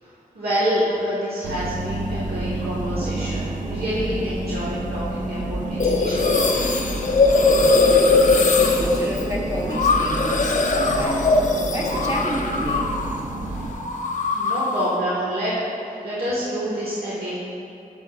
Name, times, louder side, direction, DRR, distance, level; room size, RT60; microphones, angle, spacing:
voice 1, 0.0-6.7 13.5-13.8 14.3-15.5 16.0-17.4, equal, 80° right, -10 dB, 1.3 m, -27 dB
sound 1, 1.4-13.7, right 1 dB, 55° right, 0.8 m, -29 dB
sound 2, 5.8-13.2 13.5-15.0, left 3 dB, 55° left, 0.7 m, -20 dB
voice 2, 7.5-11.3 11.7-13.0, equal, 20° right, -5 dB, 1.0 m, -30 dB
8.5 x 8.2 x 2.4 m, 2.8 s
cardioid pair, 70°, 15 cm